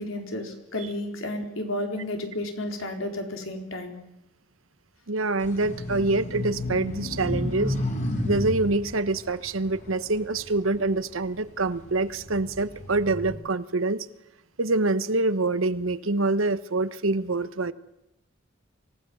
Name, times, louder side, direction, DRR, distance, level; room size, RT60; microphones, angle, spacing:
voice 1, 0.0-4.0, left 1 dB, 85° left, 3 dB, 4.3 m, -32 dB
voice 2, 5.1-7.7 8.2-14.1 14.6-17.7, right 2 dB, 85° right, 14 dB, 1.1 m, -25 dB
sound 1, 5.4-11.0 11.5-13.3, left 1 dB, 40° left, 4.3 m, -32 dB
25.5 x 18.0 x 7.2 m, 0.86 s
head